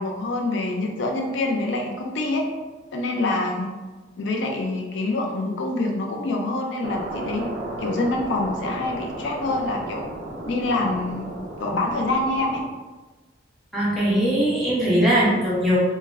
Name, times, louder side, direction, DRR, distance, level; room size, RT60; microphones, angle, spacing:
voice 1, 0.0-2.5 2.9-3.7 4.2-7.4 7.8-10.1 10.5-11.3 11.6-12.6, left 2 dB, 75° left, 2 dB, 0.4 m, -26 dB
sound 1, 6.8-12.6, right 1 dB, 45° right, 0.4 m, -34 dB
voice 2, 13.7-15.8, equal, ahead, -8 dB, 0.7 m, -20 dB
2.1 x 2.0 x 3.4 m, 1.2 s
head